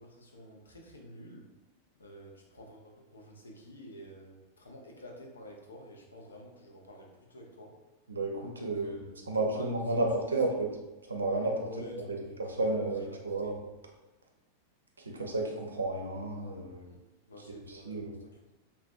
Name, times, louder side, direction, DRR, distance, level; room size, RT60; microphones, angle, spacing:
voice 1, 0.0-1.5 2.0-7.8 8.5-10.1 11.6-13.5 16.8-18.5, left 1 dB, 75° left, 0 dB, 0.5 m, -49 dB
voice 2, 8.1-10.7 11.0-11.7 12.4-13.6 15.0-16.9 17.7-18.2, right 2 dB, 75° right, 1 dB, 0.4 m, -32 dB
2.5 x 2.1 x 2.4 m, 1.0 s
figure-of-eight pair, 90°, 0 cm